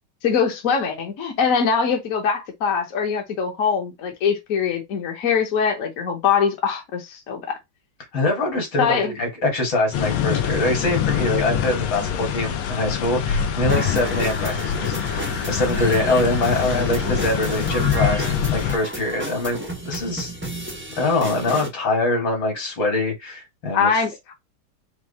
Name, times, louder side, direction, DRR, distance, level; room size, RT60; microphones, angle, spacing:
voice 1, 0.2-7.6 8.8-9.1 23.7-24.3, left 6 dB, 50° left, 1.1 m, -22 dB
voice 2, 8.1-20.3 21.0-23.9, left 2 dB, 65° left, 2.6 m, -24 dB
sound 1, 9.9-18.8, left 8 dB, 90° left, 1.6 m, -24 dB
sound 2, 13.7-21.7, right 1 dB, 20° right, 0.3 m, -32 dB
4.7 x 2.5 x 4.1 m
omnidirectional pair, 2.2 m